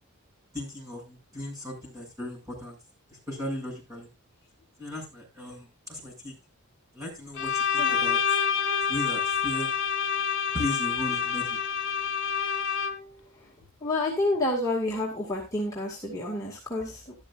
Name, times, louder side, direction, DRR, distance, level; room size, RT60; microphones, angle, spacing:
voice 1, 0.5-2.8 3.3-4.1 4.8-6.3 6.9-8.2 8.9-9.7 10.5-11.6, left 1 dB, 15° right, -1 dB, 7.1 m, -36 dB
Bowed string instrument, 7.4-13.2, left 7 dB, 60° left, 1.8 m, -27 dB
voice 2, 13.8-17.1, left 2 dB, 15° left, -4 dB, 2.2 m, -29 dB
13.5 x 12.0 x 2.6 m, 0.24 s
head